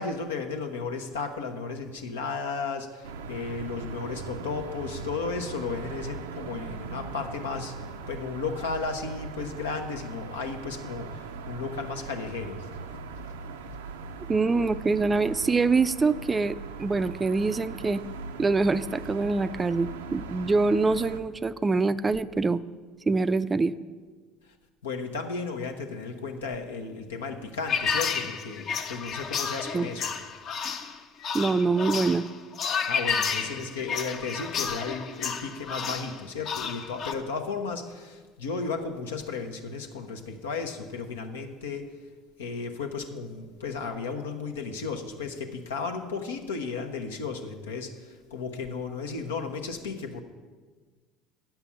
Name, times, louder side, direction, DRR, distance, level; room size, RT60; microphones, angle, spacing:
voice 1, 0.0-12.7 24.8-30.1 32.9-41.9 42.4-47.9 48.3-50.2, left 4 dB, 85° left, 4 dB, 0.9 m, -34 dB
sound 1, 3.0-21.2, right 5 dB, 85° right, 0.5 m, -40 dB
voice 2, 14.3-18.0 18.4-22.6 23.1-23.7 29.7-29.9 31.3-32.2, right 3 dB, 25° right, 15 dB, 0.4 m, -25 dB
sound 2, 27.7-37.1, left 6 dB, 50° left, 0.8 m, -31 dB
8.8 x 5.9 x 7.0 m, 1.4 s
hypercardioid pair, 75°, 0 cm